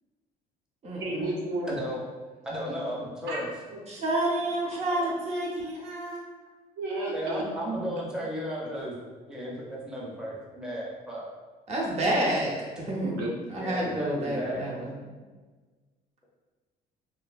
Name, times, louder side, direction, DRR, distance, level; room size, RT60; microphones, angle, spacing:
voice 1, 1.0-1.8 3.3-3.4 3.7-3.9 4.9-5.2 6.8-7.4 12.9-13.6 14.0-14.1 14.6-14.7 15.1-15.2, right 1 dB, 90° right, -3 dB, 0.6 m, -33 dB
voice 2, 1.7-2.0 2.4-3.4 7.1-9.0 9.3-11.3 13.6-14.7, equal, 5° right, -5 dB, 0.5 m, -34 dB
voice 3, 3.9-6.2 11.7-13.2 13.5-14.9, right 1 dB, 40° right, -3 dB, 0.7 m, -29 dB
2.5 x 2.2 x 2.3 m, 1.4 s
cardioid pair, 110°, 17 cm